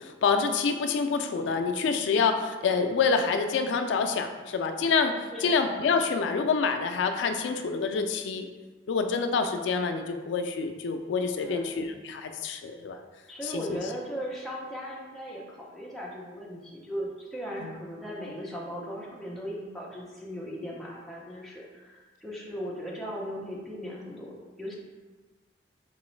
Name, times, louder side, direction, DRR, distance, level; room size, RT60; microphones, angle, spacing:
voice 1, 0.0-8.5 8.9-13.0 13.4-13.8 17.6-17.7, left 5 dB, 90° left, 6 dB, 0.3 m, -27 dB
voice 2, 13.3-24.7, equal, ahead, -5 dB, 0.6 m, -38 dB
3.7 x 3.0 x 3.1 m, 1.3 s
head